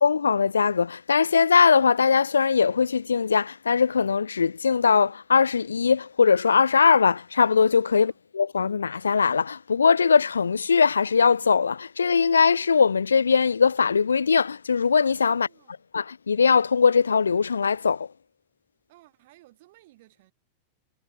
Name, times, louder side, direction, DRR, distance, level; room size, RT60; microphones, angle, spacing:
voice 1, 0.0-15.5 15.9-18.1, left 5 dB, 75° left, 0.3 m, -21 dB
voice 2, 7.9-8.2 15.3-15.9 18.9-20.3, right 19 dB, 50° right, 7.7 m, -57 dB
figure-of-eight pair, 90°, 0 cm